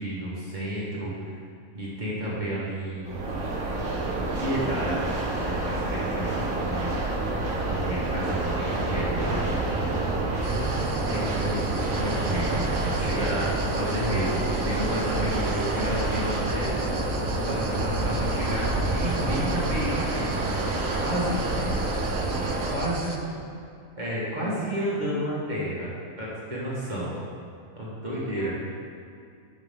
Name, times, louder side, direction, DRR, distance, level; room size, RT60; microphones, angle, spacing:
voice 1, 0.0-1.4 1.7-3.2 4.2-7.0 7.6-9.6 10.4-20.6 21.0-21.5 22.7-23.2 24.0-25.9 26.2-27.1 27.7-28.5, right 1 dB, 35° right, -7 dB, 1.9 m, -31 dB
sound 1, 3.0-22.8, right 2 dB, 75° right, 1.5 m, -28 dB
sound 2, 10.4-23.2, right 3 dB, 50° right, 0.3 m, -42 dB
voice 2, 21.4-22.2 22.6-23.4 28.1-28.5, left 1 dB, 70° left, -9 dB, 3.0 m, -45 dB
12.5 x 5.5 x 3.7 m, 2.3 s
omnidirectional pair, 1.4 m